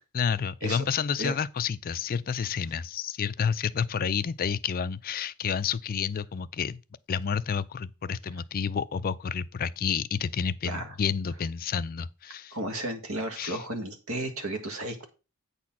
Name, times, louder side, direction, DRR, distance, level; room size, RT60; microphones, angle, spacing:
voice 1, 0.1-6.8 7.1-12.6 13.4-13.6, left 6 dB, 45° left, 0.4 m, -30 dB
voice 2, 12.5-15.0, right 1 dB, 75° right, 1.8 m, -33 dB
8.5 x 4.2 x 5.9 m
head